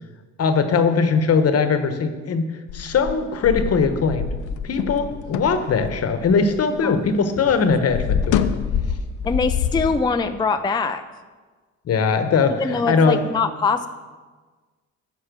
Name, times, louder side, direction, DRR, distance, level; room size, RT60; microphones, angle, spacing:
voice 1, 0.4-2.5 2.7-4.3 4.6-8.4 11.9-13.2, left 5 dB, 55° left, 9 dB, 1.1 m, -20 dB
sound 1, 2.7-7.1 7.4-9.9, left 7 dB, 85° left, 0.6 m, -26 dB
voice 2, 9.2-11.0 12.6-13.9, left 4 dB, 15° left, 8 dB, 0.4 m, -22 dB
10.0 x 5.5 x 6.1 m, 1.4 s
cardioid pair, 90°, 30 cm